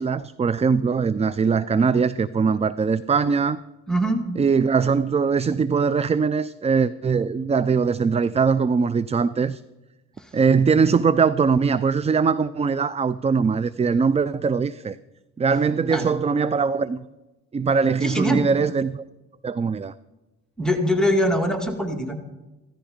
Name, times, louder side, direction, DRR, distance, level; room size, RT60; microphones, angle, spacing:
voice 1, 0.0-3.6 4.4-9.6 10.3-15.0 15.4-17.0 17.5-19.0 19.4-19.9, right 5 dB, 20° right, 0.4 m, -21 dB
voice 2, 3.9-4.2 10.2-10.3 15.9-16.1 18.0-18.4 20.6-22.2, equal, ahead, 2.1 m, -23 dB
16.0 x 13.5 x 5.1 m
cardioid pair, 90°, 30 cm